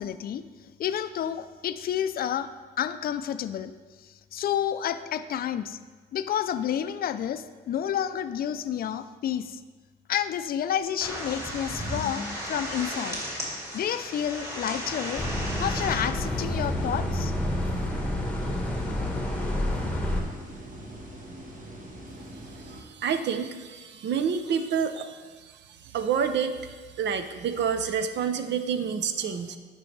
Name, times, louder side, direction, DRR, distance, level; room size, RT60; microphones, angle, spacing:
voice 1, 0.0-2.5 2.8-3.7 4.0-5.8 6.1-9.6 10.1-13.2 13.7-15.2 15.6-17.3, left 9 dB, 50° left, 12 dB, 0.4 m, -30 dB
sound 1, 11.0-16.0, equal, 15° right, 2.4 m, -34 dB
sound 2, 15.2-20.2, left 1 dB, 5° left, 1.2 m, -29 dB
sound 3, 16.3-22.8, right 1 dB, 40° right, 1.3 m, -43 dB
voice 2, 22.5-29.6, right 7 dB, 65° right, 9 dB, 0.6 m, -29 dB
9.7 x 5.4 x 3.2 m, 1.4 s
cardioid pair, 90°, 20 cm